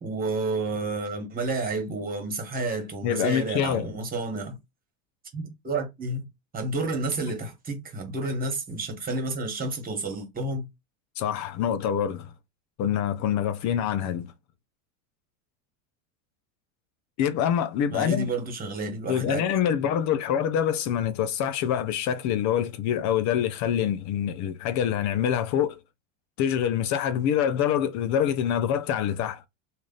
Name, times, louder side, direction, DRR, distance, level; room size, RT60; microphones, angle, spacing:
voice 1, 0.0-4.6 5.3-6.3 6.5-10.7 17.9-19.4, right 2 dB, 20° right, 1.5 m, -30 dB
voice 2, 3.0-3.9 11.2-12.3 12.8-14.3 17.2-18.3 19.1-25.8 26.4-29.4, left 9 dB, 45° left, 0.6 m, -25 dB
3.2 x 2.5 x 3.9 m
supercardioid pair, 135°, 40 cm